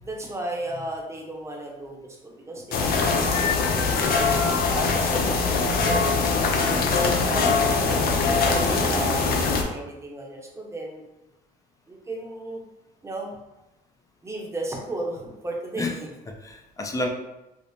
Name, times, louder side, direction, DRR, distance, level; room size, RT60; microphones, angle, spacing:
voice 1, 0.0-3.2 3.5-4.0 4.7-11.0 11.9-12.6 13.0-13.4 14.2-16.1, right 2 dB, 15° right, -1 dB, 0.8 m, -35 dB
sound 1, 2.7-9.6, left 4 dB, 65° left, 0.6 m, -22 dB
voice 2, 15.7-17.1, left 2 dB, 20° left, 3 dB, 0.5 m, -31 dB
5.0 x 2.0 x 2.7 m, 0.96 s
cardioid pair, 110°, 17 cm